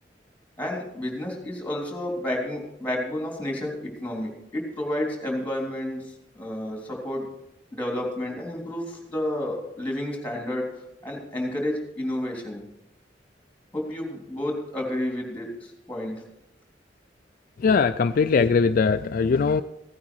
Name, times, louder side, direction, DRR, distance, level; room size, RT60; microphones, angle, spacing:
voice 1, 0.6-6.1 6.3-7.3 7.7-10.7 11.0-12.6 13.7-16.2, left 1 dB, 10° left, 0 dB, 3.3 m, -30 dB
voice 2, 17.6-19.6, left 5 dB, 50° left, 9 dB, 0.4 m, -21 dB
16.0 x 9.5 x 4.7 m, 0.86 s
head